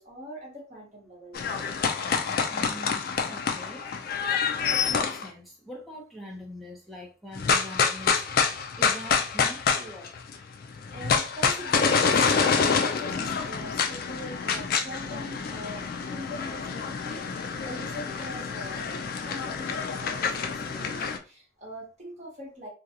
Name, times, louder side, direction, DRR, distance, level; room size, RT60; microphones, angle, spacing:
voice 1, 0.0-1.4 10.9-15.8 16.1-18.8 19.2-22.7, equal, 35° right, 1.0 m, -42 dB
sound 1, 1.3-5.3 7.3-10.4 10.6-21.2, left 5 dB, 50° left, 0.3 m, -27 dB
voice 2, 2.1-10.1, equal, ahead, 0.6 m, -44 dB
2.6 x 2.3 x 2.8 m
head